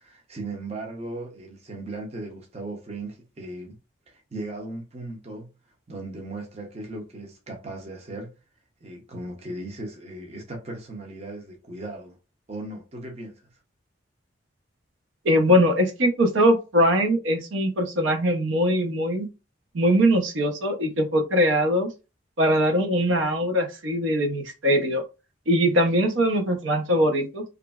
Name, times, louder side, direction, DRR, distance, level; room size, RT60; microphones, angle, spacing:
voice 1, 0.0-3.8 4.1-5.5 5.9-8.3 8.8-12.2 12.5-13.3, right 2 dB, 30° right, 0.6 m, -37 dB
voice 2, 15.2-19.3 19.7-21.9 22.4-25.0 25.5-27.4, equal, 80° right, 0.7 m, -21 dB
2.9 x 2.5 x 2.3 m
head